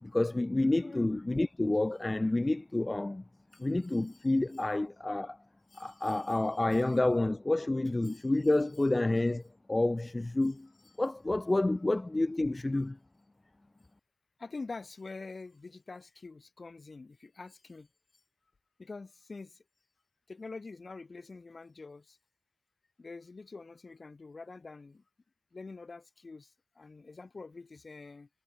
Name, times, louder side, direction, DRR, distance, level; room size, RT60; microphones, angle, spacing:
voice 1, 0.0-3.2 3.6-5.4 5.8-9.4 9.7-10.7 11.0-13.0, left 2 dB, 25° left, 0.5 m, -29 dB
voice 2, 3.5-4.3 5.7-6.8 8.1-8.3 13.7-13.8 14.4-17.9 18.8-19.6 20.3-22.2 23.0-25.0 25.5-28.3, left 3 dB, 45° left, 3.9 m, -46 dB
supercardioid pair, 45°, 0 cm